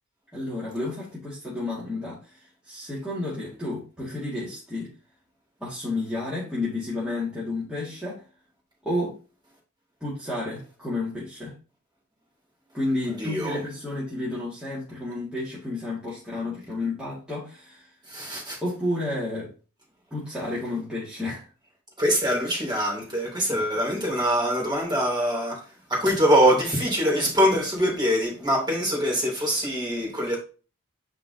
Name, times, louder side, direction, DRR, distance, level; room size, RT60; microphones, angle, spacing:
voice 1, 0.3-4.9 5.6-8.2 8.8-9.2 10.0-11.5 12.7-17.9 18.6-19.5 20.1-21.5, left 2 dB, 5° right, 2.1 m, -31 dB
voice 2, 13.0-13.6 18.1-18.6 22.0-25.6 25.9-30.4, equal, 20° right, 3.1 m, -23 dB
9.5 x 3.9 x 2.8 m
head